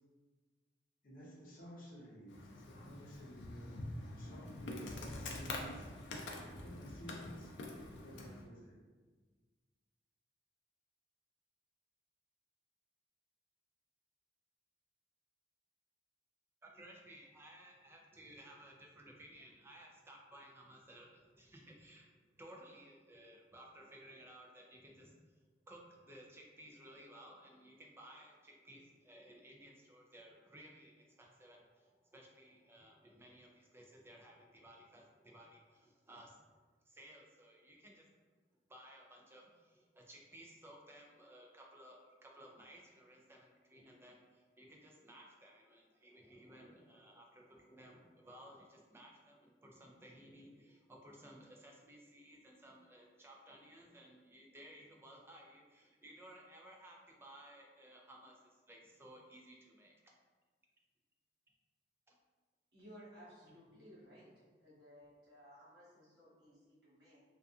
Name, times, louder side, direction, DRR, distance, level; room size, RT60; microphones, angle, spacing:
voice 1, 1.0-3.7 4.1-5.9 6.5-7.5 8.0-8.7, equal, 50° left, -5 dB, 0.7 m, -52 dB
Insect, 2.3-8.4, left 2 dB, 85° left, 0.4 m, -46 dB
voice 2, 16.6-25.2 25.7-36.4 36.9-38.1 38.7-58.4 58.7-60.1 62.1-62.2, right 1 dB, 15° right, -1 dB, 0.3 m, -58 dB
voice 3, 62.7-64.3 64.6-67.2, equal, 65° right, -9 dB, 1.2 m, -58 dB
2.5 x 2.3 x 2.4 m, 1.4 s
head